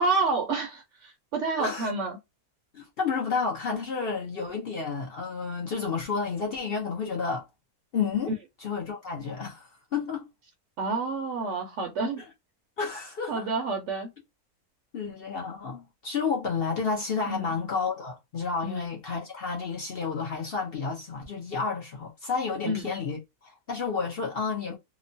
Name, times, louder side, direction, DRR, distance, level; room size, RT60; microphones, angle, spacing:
voice 1, 0.0-2.2 10.8-12.2 13.3-14.1 17.3-17.5 18.6-18.8 22.6-22.9, right 3 dB, 65° right, 0.8 m, -29 dB
voice 2, 1.6-1.9 2.7-7.5 7.9-10.3 12.2-12.3 12.8-13.5 14.9-24.8, left 5 dB, 55° left, 0.7 m, -31 dB
3.0 x 2.1 x 2.5 m
omnidirectional pair, 1.6 m